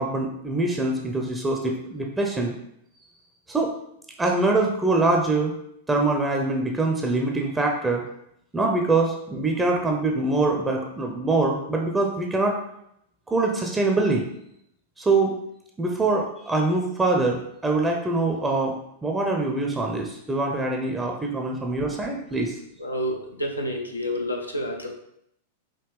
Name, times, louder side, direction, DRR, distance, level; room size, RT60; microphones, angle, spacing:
voice 1, 0.0-2.5 3.5-3.7 4.2-5.6 5.9-8.1 8.5-12.6 13.3-14.3 15.0-15.3 15.8-18.8 19.0-22.6, right 2 dB, 10° right, 1 dB, 0.6 m, -24 dB
voice 2, 22.8-24.9, equal, 85° left, 1 dB, 0.6 m, -29 dB
5.0 x 2.8 x 3.2 m, 0.74 s
figure-of-eight pair, 95°, 0 cm